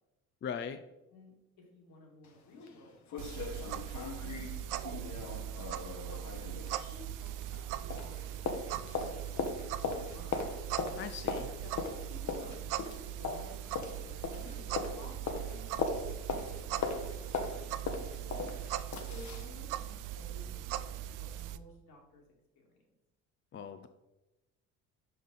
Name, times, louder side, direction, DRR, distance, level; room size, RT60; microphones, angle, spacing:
voice 1, 0.4-0.8 11.0-11.5 23.5-23.9, left 7 dB, 30° left, 9 dB, 0.4 m, -39 dB
voice 2, 1.6-3.7 4.2-5.7 6.1-6.6 6.9-10.4 11.6-11.8 12.1-18.5 19.1-22.2 22.5-22.7, left 2 dB, 70° left, -2 dB, 2.4 m, -55 dB
sound 1, 2.2-2.3 2.7-2.8 3.1-7.7 7.9-19.5 19.9-20.0, left 4 dB, 50° left, 1.0 m, -39 dB
sound 2, 3.2-21.6, right 11 dB, 55° right, 0.5 m, -40 dB
5.6 x 5.0 x 4.0 m, 0.99 s
supercardioid pair, 70°, 37 cm